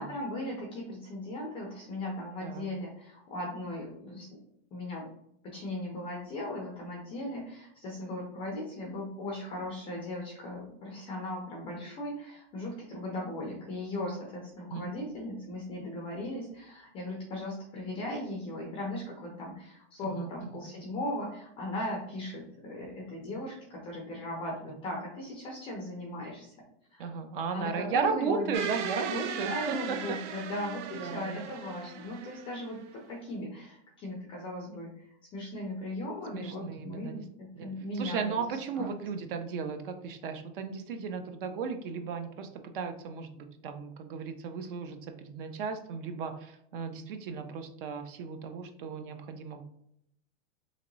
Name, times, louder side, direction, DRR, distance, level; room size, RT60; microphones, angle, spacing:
voice 1, 0.0-4.3 4.7-5.1 5.4-26.5 26.9-27.1 27.5-28.6 29.1-38.4 38.8-38.9, left 1 dB, 15° left, -1 dB, 0.4 m, -38 dB
voice 2, 20.0-20.6 27.0-30.2 30.9-31.4 36.3-37.3 37.5-42.5 42.7-49.6, right 5 dB, 50° right, 7 dB, 0.5 m, -35 dB
sound 1, 28.5-32.9, right 7 dB, 90° right, 0.7 m, -38 dB
3.0 x 2.9 x 3.8 m, 0.74 s
supercardioid pair, 160°, 35 cm